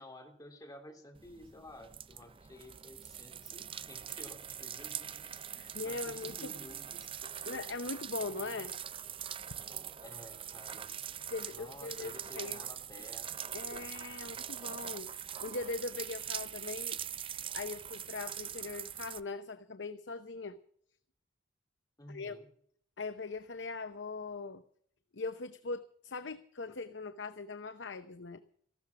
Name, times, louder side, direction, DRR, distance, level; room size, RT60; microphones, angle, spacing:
voice 1, 0.0-5.3 5.6-7.6 10.0-10.9 11.5-14.4 22.0-22.5, left 1 dB, 20° left, 3 dB, 3.1 m, -53 dB
sound 1, 1.2-19.2, right 9 dB, 30° right, 0.5 m, -43 dB
voice 2, 5.5-6.5 7.4-8.8 11.3-12.6 13.5-15.1 15.4-17.0 17.5-20.6 22.1-22.4 23.0-24.6 25.1-28.4, left 3 dB, 75° left, 10 dB, 0.8 m, -40 dB
15.0 x 13.0 x 6.0 m, 0.63 s
head